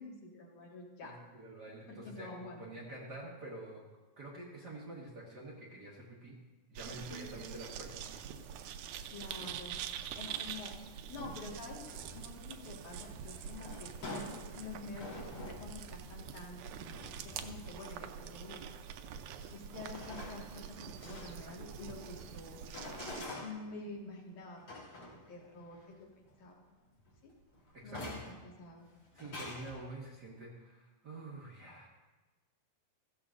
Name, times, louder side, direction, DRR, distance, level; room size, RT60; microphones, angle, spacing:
voice 1, 0.0-1.2 1.6-2.6 7.1-7.4 9.1-11.9 12.1-13.9 14.5-16.7 17.2-18.6 19.5-22.6 23.4-24.6 25.0-26.6 27.2-27.3 27.8-28.8, left 3 dB, 75° left, -1 dB, 3.2 m, -48 dB
voice 2, 1.0-3.8 4.2-6.4 6.7-8.2 27.7-28.2 29.1-31.9, right 2 dB, 45° right, -4 dB, 1.5 m, -47 dB
sound 1, 6.8-23.2, right 8 dB, 80° right, 1.9 m, -45 dB
sound 2, 10.2-10.7 11.2-16.3 16.9-18.0 18.6-18.7 19.2-23.9 24.4-25.9 26.3-26.4 26.7-28.5 28.9-29.7, left 1 dB, 45° left, 4.1 m, -48 dB
14.5 x 14.5 x 2.5 m, 1.2 s
omnidirectional pair, 3.5 m